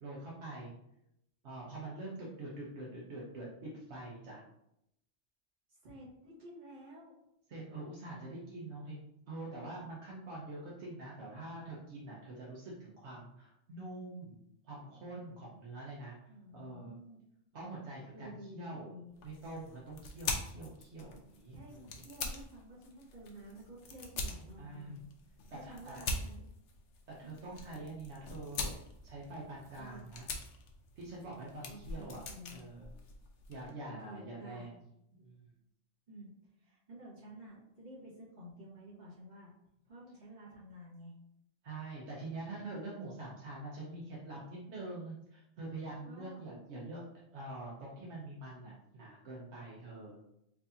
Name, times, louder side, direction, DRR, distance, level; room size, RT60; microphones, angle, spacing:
voice 1, 0.0-0.7 1.4-4.4 7.5-9.0 9.3-14.4 14.6-16.2 16.5-17.0 17.5-18.9 19.2-21.8 24.6-25.0 25.5-26.1 27.2-28.7 29.0-30.3 31.0-32.2 32.5-32.9 33.5-34.7 35.1-35.4 41.6-47.0 47.3-50.2, right 2 dB, 70° right, -5 dB, 1.0 m, -45 dB
voice 2, 5.7-7.1 16.3-17.2 18.1-19.1 21.5-25.0 25.5-26.4 27.2-27.3 29.8-30.1 31.7-32.6 33.9-34.7 36.1-36.3 36.6-39.5 39.9-41.1 46.0-46.5, right 1 dB, 40° right, -7 dB, 1.4 m, -51 dB
sound 1, 19.2-33.7, left 3 dB, 75° left, 0.9 m, -44 dB
4.5 x 2.6 x 2.7 m, 0.80 s
omnidirectional pair, 1.2 m